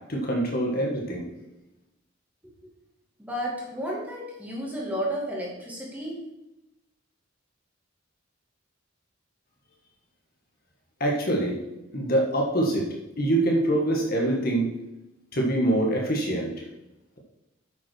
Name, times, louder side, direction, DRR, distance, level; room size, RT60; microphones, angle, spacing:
voice 1, 0.1-1.3 11.0-11.6 11.9-12.9 13.2-14.7 15.3-16.6, right 1 dB, 45° left, 0 dB, 1.6 m, -24 dB
voice 2, 3.2-6.2, equal, 5° right, -4 dB, 2.5 m, -32 dB
8.5 x 6.1 x 6.3 m, 0.94 s
head